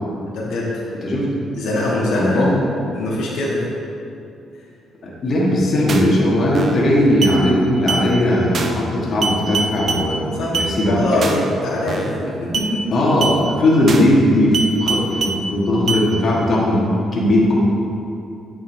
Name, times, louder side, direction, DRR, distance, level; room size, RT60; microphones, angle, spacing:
voice 1, 0.3-0.9 1.5-2.4 2.9-3.6 10.2-10.6 10.8-12.8, left 1 dB, 85° left, -6 dB, 1.5 m, -23 dB
voice 2, 2.1-2.6 5.0-10.2 10.5-11.0 12.9-16.8 17.1-17.6, left 1 dB, 50° left, -4 dB, 1.4 m, -17 dB
sound 1, 5.9-6.2 6.5-6.9 7.2-7.4 7.9-8.0 8.5-8.9 9.2-10.0 10.5-10.7 11.2-11.5 11.9-12.2 12.5-12.7 13.2-13.4 13.9-14.2 14.5-15.4 15.9-16.0, right 4 dB, 50° right, 0.6 m, -23 dB
8.8 x 5.3 x 3.3 m, 2.6 s
cardioid pair, 90°, 0 cm